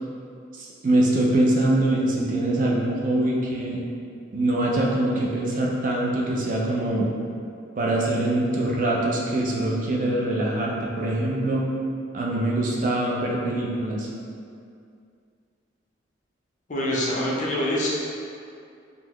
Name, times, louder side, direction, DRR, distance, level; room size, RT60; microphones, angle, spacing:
voice 1, 0.5-3.8 4.3-7.1 7.8-11.6 12.1-14.1, right 1 dB, 45° right, -3 dB, 0.4 m, -23 dB
voice 2, 16.7-17.9, left 1 dB, 40° left, -5 dB, 0.5 m, -25 dB
3.8 x 2.0 x 3.0 m, 2.4 s
head